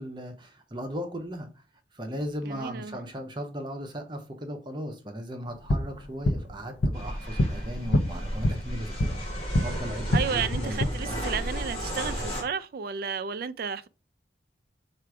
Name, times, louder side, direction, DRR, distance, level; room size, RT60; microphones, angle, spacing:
voice 1, 0.0-1.6 1.9-11.4, equal, 25° right, 0.7 m, -37 dB
voice 2, 2.5-3.0 10.1-13.9, right 6 dB, 50° right, 0.3 m, -32 dB
sound 1, 5.5-9.7 10.0-10.9, left 1 dB, 75° left, 0.6 m, -27 dB
sound 2, 6.9-12.4, equal, 30° left, 1.9 m, -33 dB
4.6 x 2.5 x 4.7 m
head